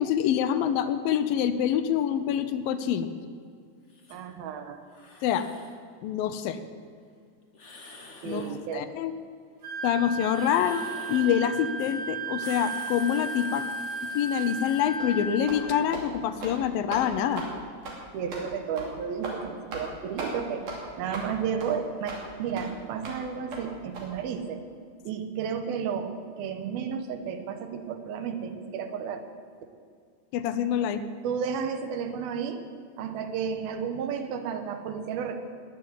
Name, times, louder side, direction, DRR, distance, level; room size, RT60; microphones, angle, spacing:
voice 1, 0.0-3.1 5.2-5.5 6.0-6.6 8.3-9.1 9.8-10.8 11.1-13.7 14.1-17.5 30.3-31.0, left 9 dB, 80° left, 11 dB, 2.4 m, -26 dB
sound 1, 3.9-4.2 4.9-5.8 7.5-8.6 10.2-11.4 11.8-12.0 12.3-14.8, left 3 dB, 45° left, 0.8 m, -48 dB
voice 2, 4.1-4.8 8.2-8.9 18.1-20.6 21.0-24.6 25.0-29.2 31.2-32.6 33.0-35.4, right 7 dB, 80° right, 8 dB, 3.0 m, -32 dB
Wind instrument woodwind instrument, 9.6-15.8, right 3 dB, 35° right, 4.0 m, -35 dB
sound 2, 15.0-15.1 15.5-15.6 15.9-16.1 16.4-16.6 16.9-17.0 17.4-17.5 17.8-18.0 18.3-18.4 18.8-18.9 19.2-19.4 19.7-19.9 20.2-20.3 20.7-20.8 21.1-21.3 21.6-21.7 22.1-22.2 22.6-22.7 23.0-23.2 23.5-23.6 23.9-24.0, right 3 dB, 60° right, 4.1 m, -37 dB
19.5 x 7.4 x 9.2 m, 2.2 s
omnidirectional pair, 4.3 m